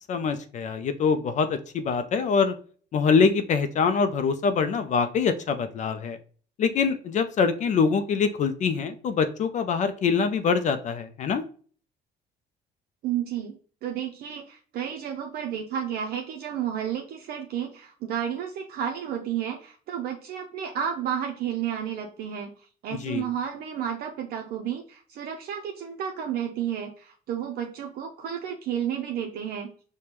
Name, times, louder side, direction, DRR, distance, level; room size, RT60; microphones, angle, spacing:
voice 1, 0.1-2.6 2.9-6.2 6.6-11.4 22.9-23.3, left 5 dB, 45° left, 9 dB, 0.4 m, -24 dB
voice 2, 13.0-13.5 13.8-22.5 22.8-29.7, right 9 dB, 65° right, 2 dB, 0.5 m, -31 dB
5.0 x 2.2 x 3.0 m, 0.43 s
cardioid pair, 110°, 17 cm